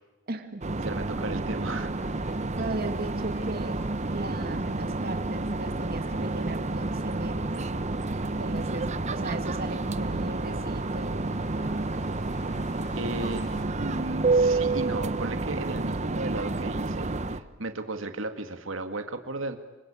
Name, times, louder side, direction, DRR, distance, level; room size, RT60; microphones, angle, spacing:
voice 1, 0.3-0.7 2.6-3.8 4.1-7.7 8.4-11.4, right 2 dB, 50° right, 6 dB, 1.7 m, -37 dB
sound 1, 0.6-17.4, right 2 dB, 35° right, 1.0 m, -29 dB
voice 2, 0.8-1.9 12.9-13.5 13.8-19.6, right 2 dB, 85° right, 8 dB, 2.1 m, -35 dB
sound 2, 1.6-13.6, left 1 dB, 35° left, 3.2 m, -51 dB
26.5 x 25.5 x 8.9 m, 1.2 s
head